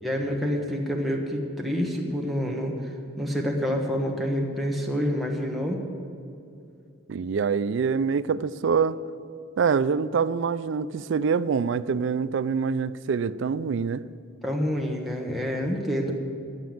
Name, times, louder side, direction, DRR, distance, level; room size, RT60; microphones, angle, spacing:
voice 1, 0.0-5.8 14.4-16.1, equal, ahead, -1 dB, 1.2 m, -28 dB
voice 2, 7.1-9.0 9.6-14.0, right 6 dB, 65° right, 16 dB, 0.3 m, -25 dB
11.0 x 9.1 x 7.7 m, 2.4 s
head